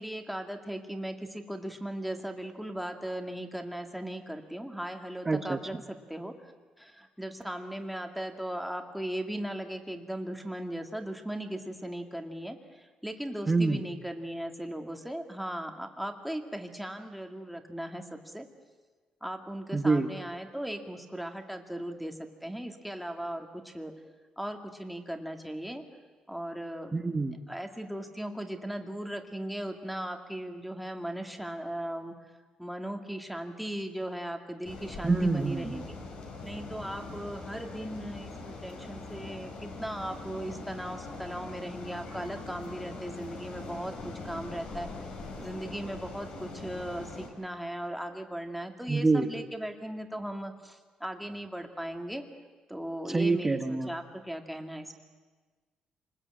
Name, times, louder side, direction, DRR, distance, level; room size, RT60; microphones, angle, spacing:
voice 1, 0.0-6.4 6.8-18.5 19.2-23.9 24.4-25.9 26.3-27.1 27.5-32.2 32.6-36.0 36.4-44.9 45.4-52.2 52.7-54.9, right 1 dB, ahead, 4 dB, 2.0 m, -38 dB
voice 2, 5.3-5.6 13.5-13.8 19.7-20.1 26.9-27.3 35.0-35.8 48.9-49.3 53.1-53.9, right 3 dB, 15° right, 8 dB, 1.2 m, -26 dB
sound 1, 34.6-47.3, left 3 dB, 60° left, 5.0 m, -42 dB
27.5 x 20.0 x 8.7 m, 1.4 s
cardioid pair, 155°, 2 cm